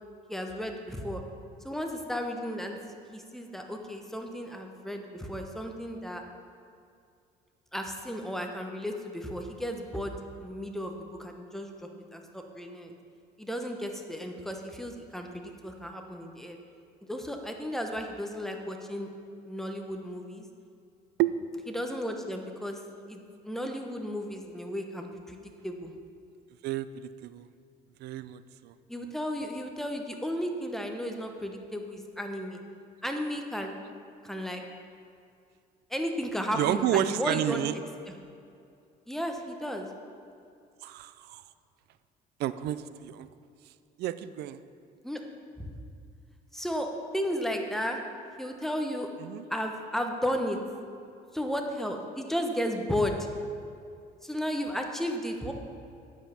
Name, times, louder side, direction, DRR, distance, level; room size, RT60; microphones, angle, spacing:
voice 1, 0.3-1.2 1.6-2.8 3.1-6.2 7.7-10.9 11.2-11.7 12.1-12.9 13.4-16.6 17.1-19.1 19.4-20.5 21.7-22.8 23.1-25.9 28.9-32.6 33.0-33.8 34.2-34.6 35.9-37.6 39.1-39.9 45.0-45.2 46.5-46.9 47.1-48.0 48.4-49.1 49.5-50.6 51.3-53.2 54.2-55.5, equal, ahead, 3 dB, 1.0 m, -34 dB
voice 2, 26.6-27.5 28.0-28.7 36.5-37.7 40.8-41.4 42.4-43.3 43.7-43.8 44.0-44.6 49.2-49.4, right 12 dB, 75° right, 14 dB, 0.5 m, -30 dB
9.4 x 7.4 x 5.7 m, 2.4 s
cardioid pair, 110°, 17 cm